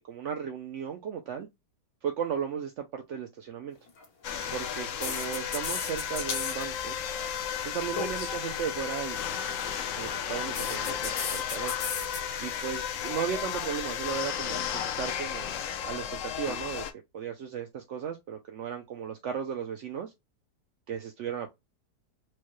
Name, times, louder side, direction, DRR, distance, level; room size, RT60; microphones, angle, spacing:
voice 1, 0.1-1.5 2.0-3.8 4.5-7.0 7.7-11.7 12.4-16.8 17.1-20.1 20.9-21.5, right 8 dB, 75° right, 0.7 m, -36 dB
sound 1, 3.9-4.0 5.0-6.6 6.9-7.3 7.9-8.3 10.5-12.2, left 5 dB, 85° left, 1.6 m, -35 dB
sound 2, 4.2-16.9, left 9 dB, 70° left, 0.7 m, -34 dB
4.6 x 2.1 x 3.0 m
omnidirectional pair, 1.8 m